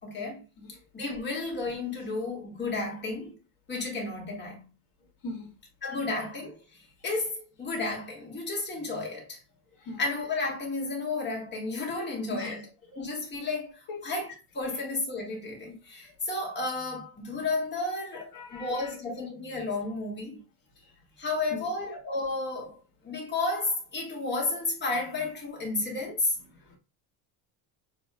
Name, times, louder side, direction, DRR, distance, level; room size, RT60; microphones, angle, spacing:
voice 1, 0.0-0.4 0.9-3.4 3.7-4.7 5.8-9.4 10.0-12.7 12.9-14.3 14.5-20.4 21.2-22.8 23.0-26.4, left 3 dB, 20° left, 1.9 m, -32 dB
voice 2, 5.2-5.5 9.8-10.0 12.3-12.6 13.9-14.0 18.3-18.9 21.5-21.7 26.7-26.8, left 2 dB, 45° left, 1.8 m, -39 dB
6.8 x 2.8 x 2.3 m
cardioid pair, 125°, 49 cm